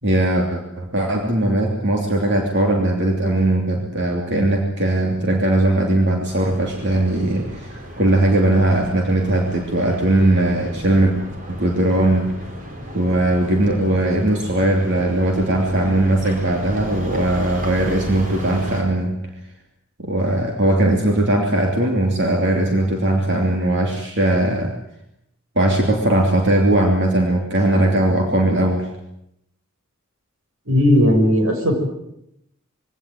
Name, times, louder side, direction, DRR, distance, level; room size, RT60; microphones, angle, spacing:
voice 1, 0.0-11.1 11.5-12.3 12.9-19.2 20.0-24.7 25.6-28.9, right 1 dB, 55° right, 1 dB, 3.0 m, -19 dB
sound 1, 6.3-18.8, equal, 40° right, 4.6 m, -34 dB
voice 2, 30.7-31.7, left 1 dB, 80° right, 4 dB, 6.5 m, -16 dB
22.5 x 17.5 x 9.4 m, 0.80 s
head